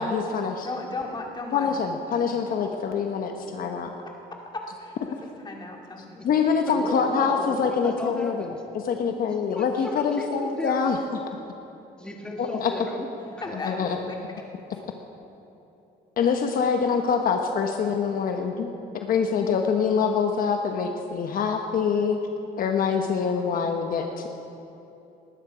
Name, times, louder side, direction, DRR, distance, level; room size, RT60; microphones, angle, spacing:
voice 1, 0.0-0.7 1.5-3.9 6.2-8.5 8.9-11.0 12.4-12.7 13.6-14.0 16.2-22.2 22.6-24.3, left 6 dB, 60° left, 4 dB, 1.1 m, -25 dB
voice 2, 0.6-1.8 4.5-5.2 5.4-6.2 13.4-14.2, left 2 dB, 25° left, 1 dB, 2.2 m, -35 dB
voice 3, 6.7-8.6 9.3-10.9 12.0-13.6, left 1 dB, 5° left, 1 dB, 1.7 m, -35 dB
19.0 x 12.0 x 5.0 m, 2.9 s
cardioid pair, 110°, 17 cm